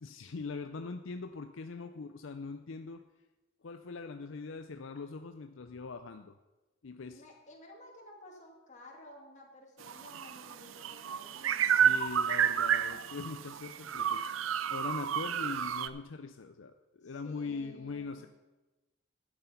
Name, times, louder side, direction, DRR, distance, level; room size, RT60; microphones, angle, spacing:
voice 1, 0.0-3.0 3.6-6.3 6.8-7.2 11.7-18.3, left 4 dB, 75° left, 7 dB, 0.6 m, -42 dB
voice 2, 7.1-12.0 17.0-18.2, left 1 dB, 40° left, 0 dB, 2.3 m, -54 dB
sound 1, 9.8-15.9, right 8 dB, 90° right, 0.5 m, -30 dB
11.5 x 7.9 x 5.6 m, 1.1 s
head